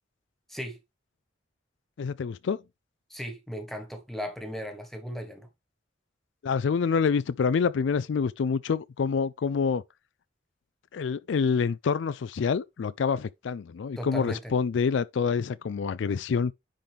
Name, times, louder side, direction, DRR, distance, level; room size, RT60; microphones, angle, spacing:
voice 1, 2.0-2.6 6.4-9.8 10.9-16.5, left 5 dB, 70° left, 0.4 m, -27 dB
voice 2, 3.1-5.5 14.0-14.5, equal, ahead, 1.5 m, -36 dB
10.0 x 3.9 x 3.4 m
head